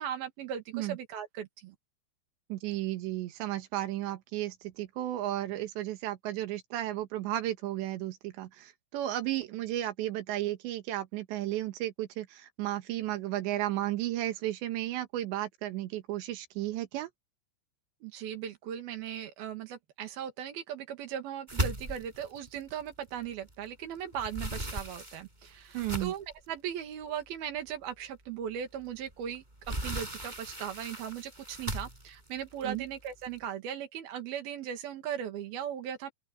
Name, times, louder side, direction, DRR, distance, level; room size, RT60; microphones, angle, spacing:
voice 1, 0.0-1.8 18.0-36.1, right 9 dB, 60° right, 3.6 m, -38 dB
voice 2, 2.5-17.1 25.7-26.1 32.6-32.8, right 14 dB, 80° right, 3.9 m, -34 dB
sound 1, 21.5-23.7 24.0-26.4 27.0-27.1 27.6-27.7 29.1-33.4, right 1 dB, 10° right, 5.8 m, -37 dB
open air
omnidirectional pair, 5.1 m